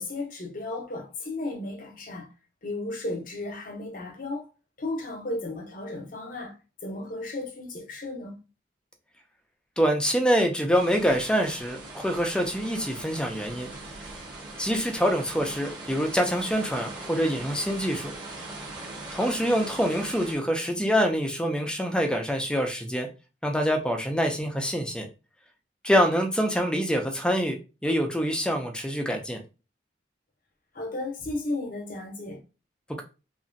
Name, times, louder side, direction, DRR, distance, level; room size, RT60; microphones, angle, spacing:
voice 1, 0.0-2.3 2.6-4.5 4.8-6.6 6.8-8.3 30.7-32.4, left 2 dB, 45° left, 0.7 m, -34 dB
voice 2, 9.8-13.7 14.6-18.1 19.1-23.1 23.4-25.1 25.8-27.6 27.8-29.4, equal, 5° left, 0.3 m, -25 dB
sound 1, 10.7-20.3, right 2 dB, 25° right, 0.8 m, -40 dB
2.9 x 2.4 x 2.5 m
head